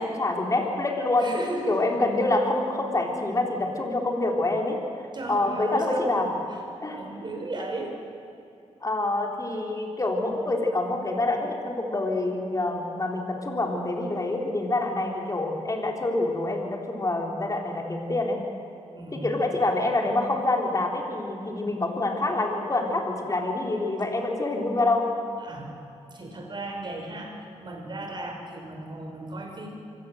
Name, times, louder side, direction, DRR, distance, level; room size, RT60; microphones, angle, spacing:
voice 1, 0.0-1.3 1.7-4.8 5.3-6.3 6.8-7.0 8.8-18.4 19.1-25.1, left 2 dB, 30° left, 1 dB, 3.6 m, -26 dB
voice 2, 1.2-2.0 5.1-6.3 6.9-8.0 18.9-19.6 25.4-25.8 26.1-29.7, right 2 dB, 40° right, 2 dB, 5.2 m, -36 dB
25.0 x 16.5 x 7.8 m, 2.6 s
cardioid pair, 85°, 12 cm